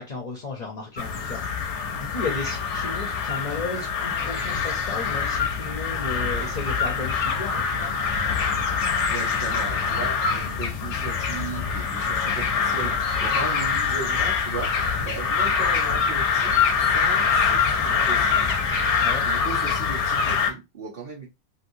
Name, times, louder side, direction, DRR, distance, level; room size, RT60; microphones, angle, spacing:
voice 1, 0.0-8.0 12.2-12.3 15.0-15.1 19.0-19.3, left 3 dB, 45° left, 0.7 m, -34 dB
sound 1, 1.0-20.5, left 6 dB, 90° left, 1.0 m, -24 dB
sound 2, 4.1-19.1, left 1 dB, 10° right, 0.4 m, -43 dB
voice 2, 9.1-18.8 19.2-21.3, right 5 dB, 55° right, 1.1 m, -37 dB
3.1 x 3.0 x 2.6 m
omnidirectional pair, 1.2 m